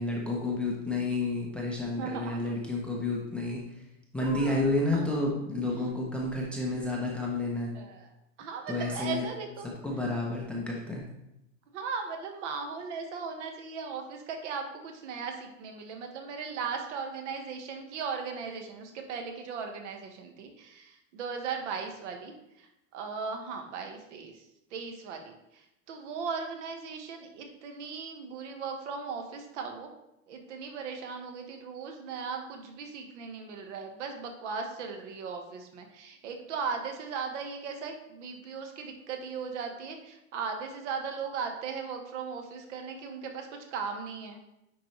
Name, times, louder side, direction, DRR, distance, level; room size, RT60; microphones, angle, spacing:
voice 1, 0.0-3.6 4.1-7.7 8.7-9.3 9.8-11.0, left 2 dB, 5° left, -3 dB, 0.7 m, -30 dB
voice 2, 1.8-2.5 4.2-5.1 5.6-5.9 7.7-8.1 8.4-10.1 11.7-29.9 30.3-44.4, right 5 dB, 60° right, 4 dB, 1.3 m, -38 dB
9.9 x 4.0 x 3.2 m, 0.87 s
supercardioid pair, 145°, 39 cm